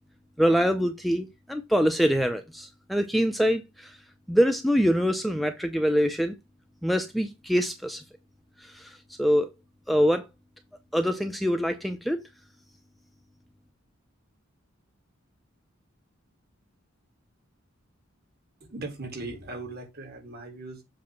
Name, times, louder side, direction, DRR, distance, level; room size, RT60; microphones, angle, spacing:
voice 1, 0.4-3.9 4.3-6.3 6.8-8.0 8.7-8.9 9.2-9.5 9.9-10.2 10.9-12.2, equal, ahead, 0.6 m, -24 dB
voice 2, 18.6-20.8, right 2 dB, 50° right, 1.9 m, -38 dB
7.4 x 2.9 x 5.8 m
head